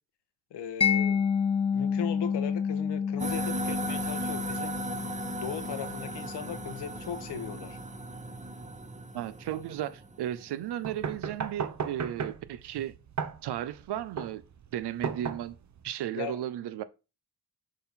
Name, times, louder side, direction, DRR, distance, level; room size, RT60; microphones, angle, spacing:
voice 1, 0.5-1.3 1.7-4.8 5.4-7.8 16.1-16.4, left 8 dB, 85° left, 1.1 m, -38 dB
Mallet percussion, 0.8-7.6, left 6 dB, 15° left, 0.3 m, -30 dB
sound 1, 3.2-10.8, right 2 dB, 20° right, 0.9 m, -37 dB
voice 2, 9.1-12.9 13.4-14.4 14.7-15.6 15.8-16.8, right 11 dB, 80° right, 0.7 m, -35 dB
sound 2, 10.8-15.8, right 6 dB, 45° right, 0.8 m, -36 dB
6.5 x 4.0 x 4.1 m
cardioid pair, 65°, 40 cm